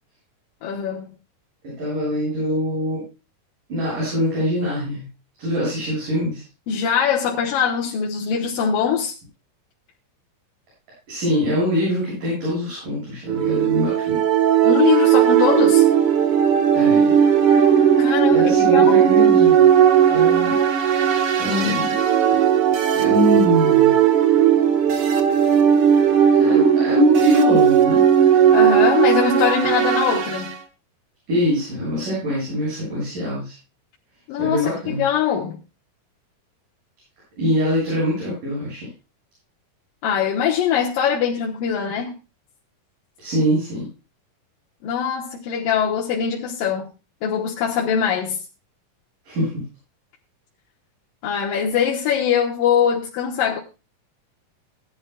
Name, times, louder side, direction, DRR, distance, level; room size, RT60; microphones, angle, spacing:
voice 1, 0.6-1.1 6.7-9.1 14.6-15.8 18.0-19.1 28.5-30.5 34.3-35.6 40.0-42.1 44.8-46.9 47.2-48.4 51.2-53.6, left 8 dB, 85° left, 2.9 m, -22 dB
voice 2, 1.6-3.0 3.7-5.0 5.4-6.4 11.1-14.2 16.7-17.3 18.3-19.6 20.1-20.6 21.4-21.9 23.0-23.9 26.4-28.0 28.3-28.4 31.3-33.5 34.4-35.0 37.4-38.9 43.2-43.8 49.3-49.5, equal, 70° right, 9.6 m, -23 dB
sound 1, 13.3-30.5, right 9 dB, 55° right, 1.7 m, -16 dB
18.5 x 11.5 x 2.3 m
omnidirectional pair, 3.8 m